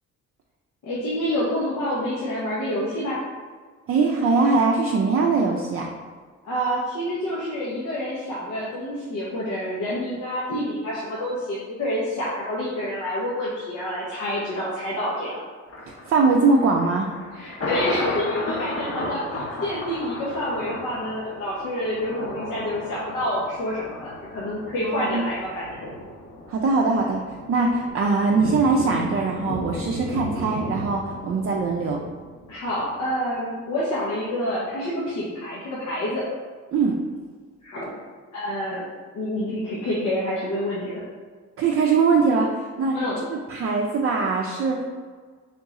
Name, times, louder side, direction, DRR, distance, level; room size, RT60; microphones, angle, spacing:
voice 1, 0.8-3.2 6.4-15.4 17.3-25.8 32.5-36.2 37.6-37.9 38.3-38.8 39.1-41.0 42.9-43.2, equal, 80° left, -7 dB, 0.9 m, -28 dB
voice 2, 3.9-5.9 16.1-17.1 24.8-25.2 26.5-32.0 36.7-36.9 41.6-43.0 43.3-44.8, right 4 dB, 50° right, -1 dB, 0.5 m, -22 dB
Thunder, 15.7-32.8 33.2-33.3, left 1 dB, 50° left, 0.9 m, -34 dB
3.7 x 3.0 x 3.6 m, 1.5 s
cardioid pair, 90°, 30 cm